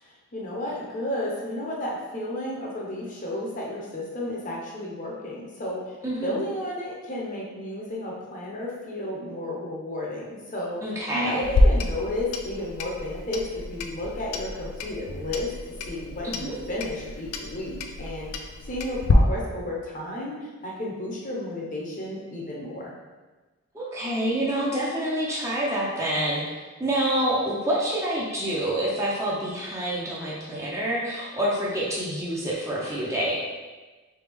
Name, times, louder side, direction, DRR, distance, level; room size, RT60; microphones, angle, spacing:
voice 1, 0.0-5.8 6.2-10.8 11.1-15.5 15.9-18.3 18.6-22.9, left 1 dB, 35° left, -3 dB, 0.7 m, -32 dB
voice 2, 6.0-6.4 10.8-11.4 16.2-16.6 23.7-26.4 26.8-33.3, right 1 dB, 15° right, -5 dB, 0.5 m, -27 dB
Clock, 11.4-19.1, left 2 dB, 90° left, 0.4 m, -28 dB
3.4 x 3.4 x 3.4 m, 1.3 s
head